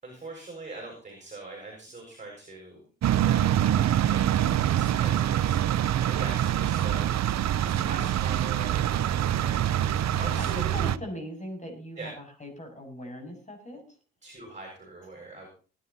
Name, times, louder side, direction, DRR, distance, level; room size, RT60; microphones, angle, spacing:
voice 1, 0.0-2.8 3.2-4.5 4.7-7.4 7.6-10.6 12.0-12.1 14.2-15.5, right 2 dB, 25° right, 1 dB, 6.8 m, -43 dB
sound 1, 3.0-11.0, right 11 dB, 60° right, 0.8 m, -25 dB
voice 2, 7.4-8.3 9.7-13.8, equal, 25° left, 3 dB, 7.3 m, -41 dB
19.0 x 10.5 x 4.2 m, 0.38 s
cardioid pair, 90°, 30 cm